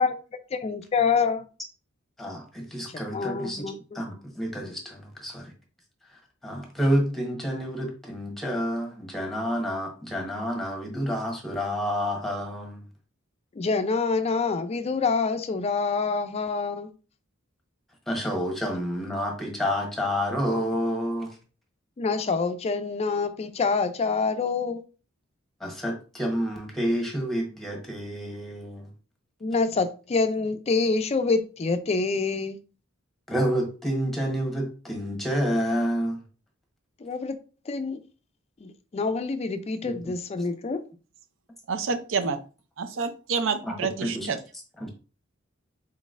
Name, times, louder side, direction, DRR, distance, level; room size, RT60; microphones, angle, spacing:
voice 1, 0.6-1.4 3.1-3.7 13.6-16.9 22.0-24.8 29.4-32.6 37.0-37.4 37.7-38.0 38.6-40.8, left 4 dB, 30° left, 0.4 m, -26 dB
voice 2, 2.2-5.5 6.1-12.8 18.1-21.4 25.6-28.9 33.3-36.2 39.8-40.1 43.6-44.3 44.8-44.9, equal, ahead, 1.0 m, -29 dB
voice 3, 41.7-42.4 42.8-44.4, right 5 dB, 70° right, 0.5 m, -28 dB
4.0 x 3.9 x 2.5 m
head